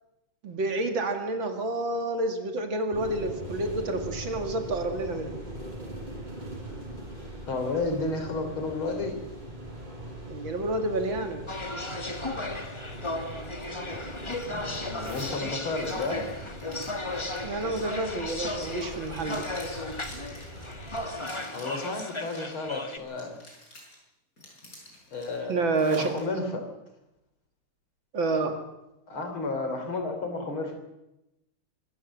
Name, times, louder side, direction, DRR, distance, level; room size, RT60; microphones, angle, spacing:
voice 1, 0.4-5.3 10.3-11.4 17.4-19.5 25.5-26.5 28.1-28.6, right 2 dB, 60° right, 6 dB, 2.9 m, -29 dB
sound 1, 2.9-21.1, right 1 dB, 20° right, 5.8 m, -41 dB
voice 2, 7.5-9.1 14.5-16.2 21.5-23.4 25.1-25.6 26.0-26.6 29.1-30.8, left 3 dB, 65° left, 5 dB, 4.1 m, -32 dB
sound 2, 11.5-23.0, left 2 dB, 15° left, 1.2 m, -35 dB
Zipper (clothing), 15.0-15.3 15.8-22.5 22.9-24.0 24.4-26.2, left 1 dB, 40° left, 6.5 m, -49 dB
25.0 x 14.0 x 7.5 m, 0.92 s
omnidirectional pair, 2.4 m